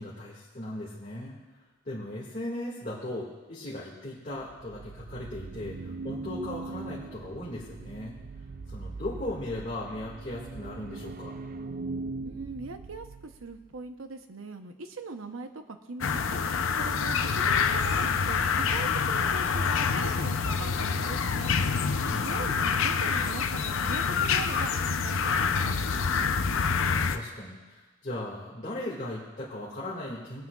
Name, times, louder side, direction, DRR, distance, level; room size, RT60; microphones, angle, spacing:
voice 1, 0.0-1.4 1.8-8.1 8.7-11.4 22.0-22.4 26.8-30.5, left 1 dB, 35° left, -7 dB, 2.0 m, -37 dB
sound 1, 4.4-13.7, right 3 dB, 40° right, 0.3 m, -40 dB
voice 2, 12.2-13.1 13.4-16.4 16.8-21.5 22.1-24.0 24.3-26.3, right 3 dB, 85° right, 7 dB, 0.8 m, -41 dB
sound 2, 16.0-27.2, left 5 dB, 80° left, 0.6 m, -27 dB
21.0 x 9.2 x 2.4 m, 1.2 s
head